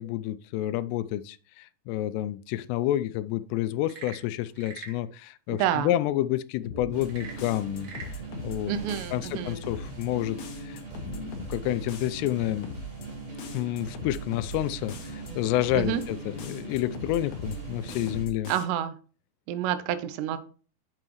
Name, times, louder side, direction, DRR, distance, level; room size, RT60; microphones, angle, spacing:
voice 1, 0.0-7.9 8.4-8.7 9.1-12.7 13.5-18.5, left 14 dB, 90° left, 2.7 m, -29 dB
Frog / Percussion / Wood, 3.7-5.0 7.0-8.2, right 4 dB, 55° right, 2.0 m, -43 dB
voice 2, 5.5-5.9 8.7-9.6 15.7-16.0 18.5-18.9 19.5-20.4, right 10 dB, 85° right, 2.9 m, -28 dB
sound 1, 6.6-7.1 7.4-8.6 8.9-9.3 9.6-10.1 10.4-11.6 11.9-12.3 12.6-13.1 13.4-14.6 14.9-15.3 15.6-16.1 16.4-17.6 17.9-18.6, left 3 dB, 60° left, 2.1 m, -40 dB
sound 2, 6.7-18.2, right 3 dB, 30° right, 1.1 m, -40 dB
7.8 x 7.7 x 3.1 m
omnidirectional pair, 4.8 m